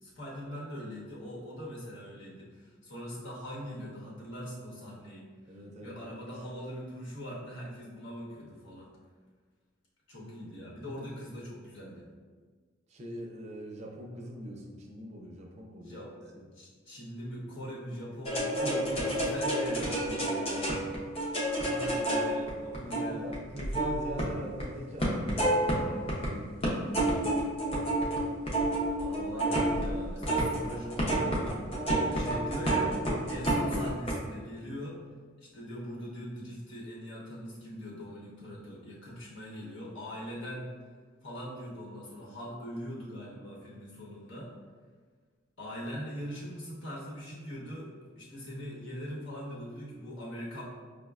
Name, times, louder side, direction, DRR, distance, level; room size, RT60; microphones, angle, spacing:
voice 1, 0.0-5.3 5.8-8.9 10.1-12.0 15.8-20.0 21.4-23.3 29.0-31.6 31.9-32.9 33.3-35.0 35.4-40.7 41.2-44.5 45.6-50.6, equal, 75° left, -6 dB, 1.0 m, -41 dB
voice 2, 5.5-6.0 12.9-16.1 16.3-16.4 18.7-20.7 22.8-26.7, equal, 35° right, 0 dB, 0.4 m, -41 dB
sound 1, 18.2-24.7 25.0-26.3 26.6-34.1, right 1 dB, 30° left, 0.5 m, -29 dB
5.1 x 2.1 x 2.3 m, 1.5 s
head